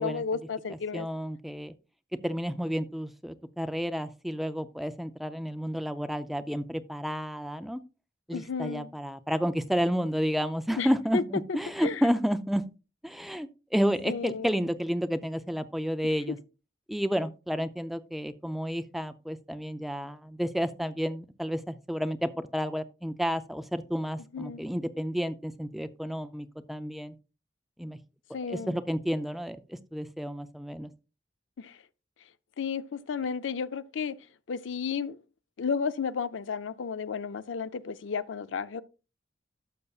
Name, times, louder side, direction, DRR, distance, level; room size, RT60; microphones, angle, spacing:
voice 1, 0.0-1.1 8.3-8.9 10.8-11.2 11.8-12.0 14.1-14.5 24.3-24.6 28.3-28.7 31.6-31.7 32.6-34.1 34.5-35.2 35.6-38.8, left 5 dB, 80° left, 0.5 m, -32 dB
voice 2, 0.7-1.7 2.2-7.8 8.3-12.6 13.0-16.4 16.9-27.1 27.8-28.0 28.5-30.9, equal, ahead, 0.4 m, -31 dB
12.0 x 6.7 x 2.4 m
head